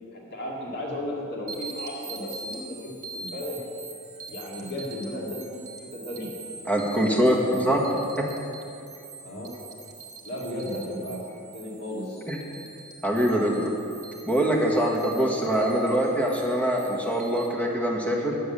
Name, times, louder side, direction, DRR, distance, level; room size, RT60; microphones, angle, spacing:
voice 1, 0.1-3.6 4.3-6.3 9.2-9.6 10.2-11.2 11.5-12.2 13.3-13.6, left 1 dB, 50° left, -3 dB, 2.4 m, -35 dB
sound 1, 1.5-17.5, right 4 dB, 35° right, 1.6 m, -44 dB
voice 2, 6.7-7.8 8.2-8.3 12.3-12.4 13.0-13.5 14.3-18.4, equal, 5° left, -1 dB, 1.5 m, -23 dB
10.5 x 6.6 x 8.8 m, 2.7 s
head